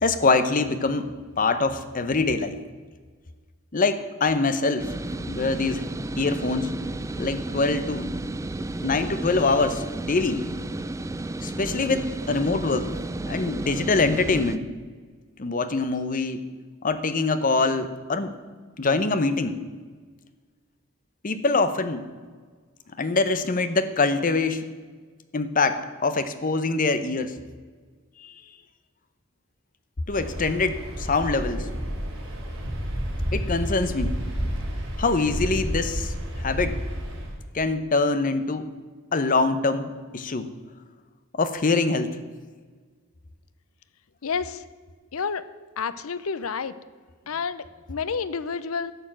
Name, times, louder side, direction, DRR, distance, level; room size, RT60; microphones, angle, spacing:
voice 1, 0.0-1.1 1.4-2.6 3.7-4.9 5.3-5.8 6.2-6.7 7.2-8.1 8.8-10.4 11.4-12.9 13.3-14.7 15.4-16.5 16.8-18.3 18.8-19.6 21.2-22.1 23.0-24.7 25.3-27.4 28.2-28.3 30.1-31.7 33.3-34.2 35.0-36.8 37.5-38.6 39.1-40.5 41.3-42.1, left 3 dB, 40° left, 11 dB, 0.8 m, -24 dB
sound 1, 4.8-14.6, right 2 dB, 15° right, 0.4 m, -32 dB
Waves surf, 30.1-37.4, equal, 65° right, 3.7 m, -30 dB
voice 2, 44.2-44.6 45.1-45.4 45.8-46.7 47.3-48.9, left 5 dB, 80° left, 15 dB, 0.6 m, -29 dB
11.5 x 7.0 x 7.4 m, 1.5 s
head